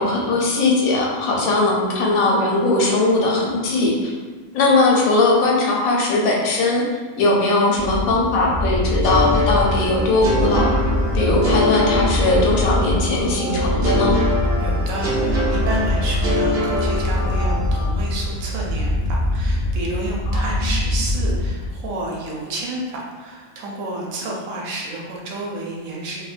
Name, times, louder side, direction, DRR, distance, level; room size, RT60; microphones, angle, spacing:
voice 1, 0.0-4.1 4.5-6.9 7.2-10.7 11.1-14.2 20.3-20.7, left 2 dB, 80° left, -2 dB, 1.0 m, -19 dB
sound 1, 7.7-22.0, left 1 dB, 60° left, 0.7 m, -23 dB
sound 2, 9.0-13.0 13.8-17.7, left 1 dB, 60° right, 0.6 m, -24 dB
sound 3, 9.9-17.9, equal, 25° left, 0.4 m, -32 dB
voice 2, 14.6-26.3, right 1 dB, 75° right, -3 dB, 1.0 m, -30 dB
2.6 x 2.1 x 2.4 m, 1.4 s
omnidirectional pair, 1.5 m